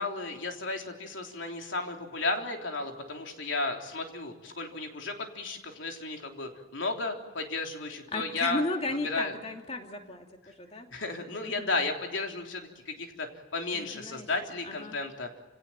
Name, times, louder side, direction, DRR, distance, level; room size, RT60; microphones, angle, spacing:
voice 1, 0.0-8.6 9.0-9.4 10.9-15.3, left 3 dB, 90° left, 3 dB, 3.6 m, -34 dB
voice 2, 8.1-10.9 11.4-11.7 13.7-14.3 14.6-15.0, left 2 dB, 35° left, 3 dB, 2.6 m, -35 dB
29.0 x 17.5 x 9.2 m, 1.3 s
head